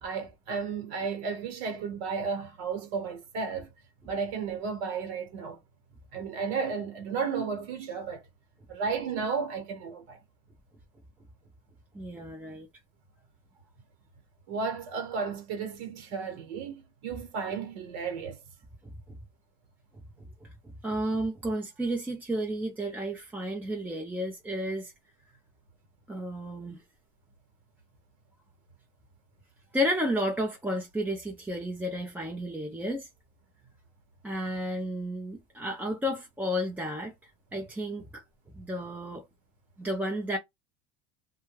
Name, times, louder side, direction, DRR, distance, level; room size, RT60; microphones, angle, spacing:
voice 1, 0.0-3.7 4.0-5.6 6.1-8.2 8.7-10.2 14.5-18.4, right 5 dB, 80° right, 1.1 m, -33 dB
voice 2, 11.9-12.7 20.4-20.5 20.8-24.9 26.1-26.8 29.7-33.1 34.2-38.2 38.5-39.2 39.8-40.4, equal, 5° right, 0.4 m, -32 dB
2.2 x 2.2 x 3.0 m
supercardioid pair, 125°, 31 cm